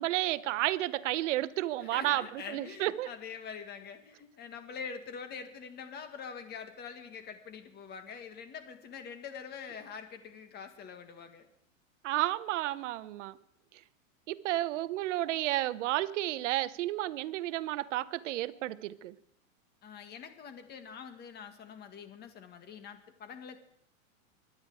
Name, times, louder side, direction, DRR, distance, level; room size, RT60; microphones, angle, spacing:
voice 1, 0.0-3.1 12.0-13.4 14.3-19.1, right 15 dB, 65° right, 0.8 m, -32 dB
voice 2, 1.8-11.5 19.8-23.6, left 6 dB, 25° left, 1.8 m, -45 dB
23.5 x 9.8 x 4.9 m
supercardioid pair, 140°, 40 cm